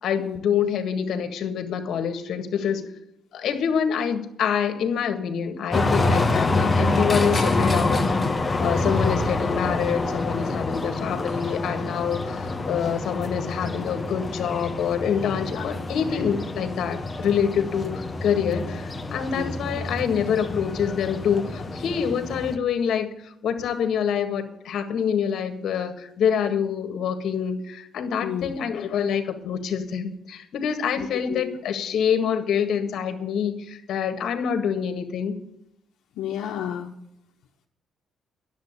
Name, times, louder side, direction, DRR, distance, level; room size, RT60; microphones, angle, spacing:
voice 1, 0.0-2.9 3.3-8.2 8.6-35.3, left 7 dB, 70° left, 7 dB, 1.7 m, -26 dB
sound 1, 5.7-22.6, left 2 dB, 25° left, 1.3 m, -26 dB
voice 2, 28.2-28.5 31.0-31.6 36.2-36.9, left 10 dB, 90° left, 0 dB, 1.0 m, -31 dB
10.5 x 7.7 x 9.6 m, 0.79 s
cardioid pair, 90°, 0 cm